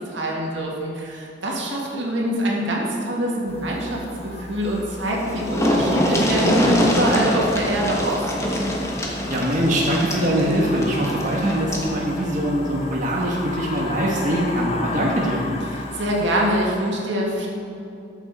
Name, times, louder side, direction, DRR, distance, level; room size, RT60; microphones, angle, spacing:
voice 1, 0.0-8.5 15.7-17.5, right 1 dB, 80° right, -2 dB, 2.0 m, -24 dB
sound 1, 3.5-16.7, left 2 dB, 35° left, 0.8 m, -35 dB
sound 2, 4.8-4.9 5.1-11.9 13.2-13.4 13.8-13.9, equal, 15° left, 1.2 m, -24 dB
voice 2, 9.3-15.4, equal, 45° right, -3 dB, 1.3 m, -22 dB
13.0 x 7.3 x 4.2 m, 2.6 s
head